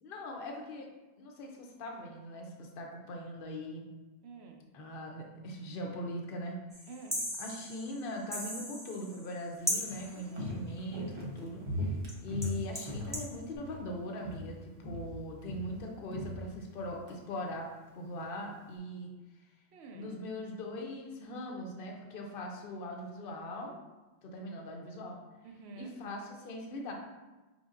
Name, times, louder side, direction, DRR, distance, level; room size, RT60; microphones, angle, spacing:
voice 1, 0.0-0.9 1.2-3.9 4.7-6.6 7.3-12.0 12.2-17.7 17.9-19.1 19.9-23.8 24.2-25.2 25.8-26.9, left 1 dB, 55° left, 1 dB, 0.8 m, -41 dB
voice 2, 4.2-4.6 6.9-7.3 10.1-10.7 10.9-11.1 19.7-20.2 25.4-25.9, right 4 dB, 70° right, 3 dB, 0.8 m, -49 dB
sound 1, 6.7-9.4 9.7-10.2 12.1-12.2 12.4-13.3, equal, 5° left, 0.5 m, -37 dB
Walk footsteps, 9.6-13.9 14.2-14.6 14.8-17.2 17.5-17.6, left 1 dB, 30° right, 0.7 m, -39 dB
5.4 x 3.5 x 2.5 m, 1.1 s
omnidirectional pair, 1.2 m